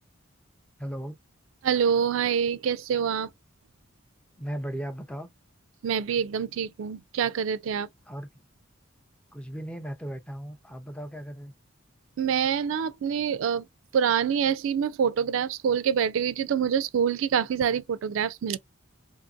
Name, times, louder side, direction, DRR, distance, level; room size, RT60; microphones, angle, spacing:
voice 1, 0.8-1.2 4.4-5.3 8.1-8.3 9.3-11.5, right 1 dB, 5° left, 0.4 m, -36 dB
voice 2, 1.6-3.3 5.8-7.9 12.2-13.7 13.9-18.6, right 7 dB, 75° right, 0.3 m, -26 dB
2.9 x 2.5 x 2.3 m
head